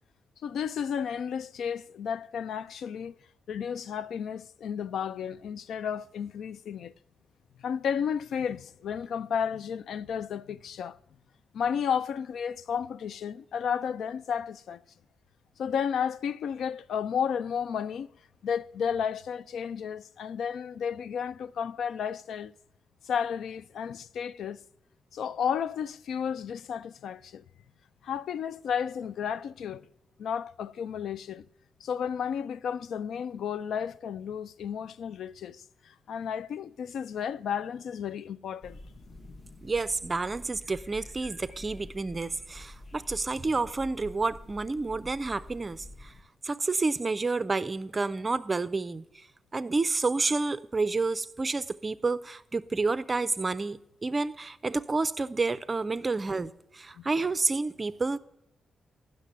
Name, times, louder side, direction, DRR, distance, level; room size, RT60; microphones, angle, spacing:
voice 1, 0.4-3.1 3.5-6.9 7.6-11.0 11.5-14.8 15.6-18.1 18.4-22.5 23.0-24.6 25.1-27.4 28.0-29.8 30.2-31.5 31.8-38.8 57.0-57.1, left 7 dB, 80° left, 0.3 m, -32 dB
sound 1, 38.6-46.2, left 1 dB, 30° left, 0.7 m, -48 dB
voice 2, 39.6-46.1 46.4-49.3 49.5-58.2, right 3 dB, 25° right, 0.4 m, -29 dB
9.9 x 6.6 x 8.0 m
wide cardioid pair, 155°, 0 cm